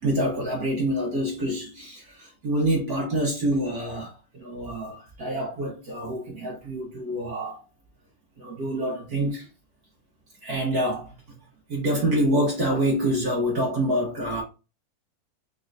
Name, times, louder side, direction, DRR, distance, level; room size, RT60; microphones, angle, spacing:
voice 1, 0.0-7.6 8.4-9.5 10.4-11.1 11.7-14.4, right 1 dB, 80° right, 0.8 m, -26 dB
4.5 x 3.3 x 2.5 m
omnidirectional pair, 3.3 m